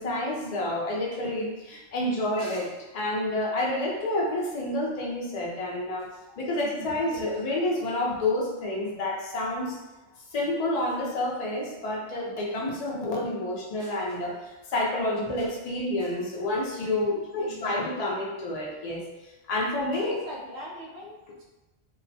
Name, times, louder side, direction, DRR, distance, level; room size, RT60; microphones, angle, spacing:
voice 1, 0.0-6.1 6.4-9.8 10.3-19.1 19.5-20.2, left 1 dB, 45° left, -3 dB, 0.5 m, -29 dB
voice 2, 2.3-2.7 6.3-7.6 9.9-10.2 12.9-13.0 13.8-14.2 15.4-15.6 16.0-16.2 17.4-18.0 19.9-21.4, equal, 80° right, -5 dB, 1.1 m, -43 dB
2.8 x 2.0 x 2.7 m, 1.0 s
omnidirectional pair, 1.2 m